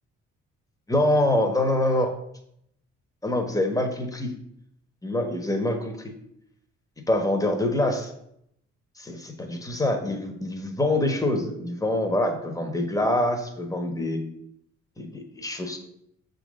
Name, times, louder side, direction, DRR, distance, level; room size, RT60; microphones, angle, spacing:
voice 1, 0.9-2.1 3.2-4.3 5.0-6.1 7.1-8.1 9.0-14.2 15.0-15.8, left 1 dB, 10° left, 4 dB, 1.3 m, -25 dB
6.4 x 4.0 x 6.4 m, 0.75 s
cardioid pair, 90°, 30 cm